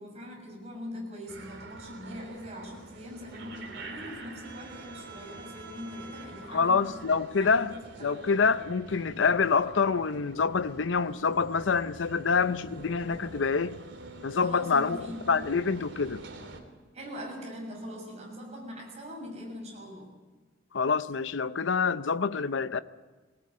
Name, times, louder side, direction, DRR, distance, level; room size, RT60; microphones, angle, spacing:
voice 1, 0.0-8.2 14.4-15.3 16.9-20.1, equal, 35° right, 6.9 m, -42 dB
sound 1, 1.3-16.6, right 2 dB, 80° right, 2.9 m, -46 dB
voice 2, 6.5-7.7 8.0-13.8 14.2-16.2 20.7-22.8, left 5 dB, 85° left, 0.6 m, -26 dB
20.5 x 18.0 x 8.6 m
head